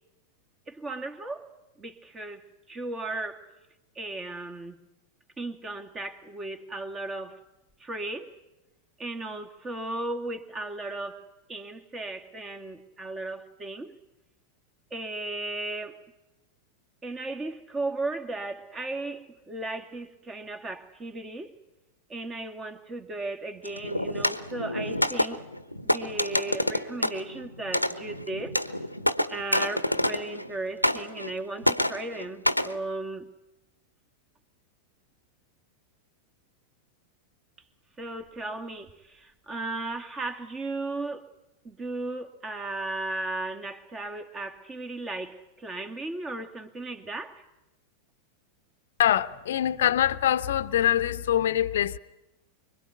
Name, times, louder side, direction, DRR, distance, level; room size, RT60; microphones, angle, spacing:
voice 1, 0.7-1.5 1.8-3.5 3.9-4.8 5.4-7.4 7.8-8.3 9.0-14.0 14.9-16.0 17.0-21.5 22.1-25.5 25.9-28.6 29.3-33.3 38.0-41.3 41.6-47.4, right 2 dB, 20° right, 2.3 m, -36 dB
sound 1, 23.6-30.5 30.8-31.4 31.6-32.8, left 1 dB, 90° left, 1.0 m, -28 dB
voice 2, 49.0-52.0, left 11 dB, 60° left, 0.9 m, -24 dB
25.0 x 24.0 x 9.5 m
figure-of-eight pair, 90°, 0 cm